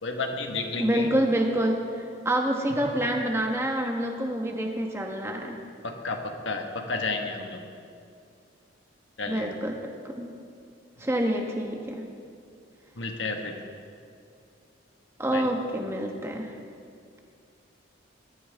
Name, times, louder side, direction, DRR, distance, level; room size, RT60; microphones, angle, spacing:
voice 1, 0.0-1.1 5.8-7.7 9.2-9.5 13.0-13.6 15.3-15.5, left 3 dB, 75° left, 4 dB, 1.4 m, -31 dB
voice 2, 0.8-5.6 9.2-10.3 11.0-12.0 15.2-16.5, right 1 dB, 15° right, 2 dB, 1.2 m, -27 dB
19.0 x 13.5 x 3.6 m, 2.3 s
head